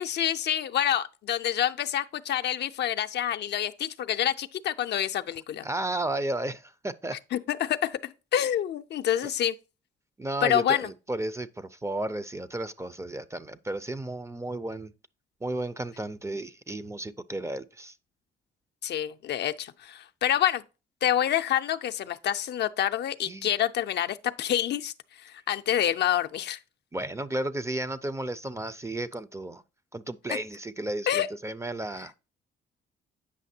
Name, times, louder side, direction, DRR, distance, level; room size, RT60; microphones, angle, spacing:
voice 1, 0.0-5.7 7.3-9.6 10.4-10.9 18.8-20.6 21.0-24.9 25.2-26.6 31.1-31.3, left 11 dB, 60° left, 0.5 m, -27 dB
voice 2, 5.6-7.2 10.2-14.9 15.4-17.9 23.2-23.5 26.9-29.6 29.9-32.3, right 1 dB, 15° right, 0.4 m, -33 dB
8.4 x 5.7 x 2.7 m
cardioid pair, 90°, 20 cm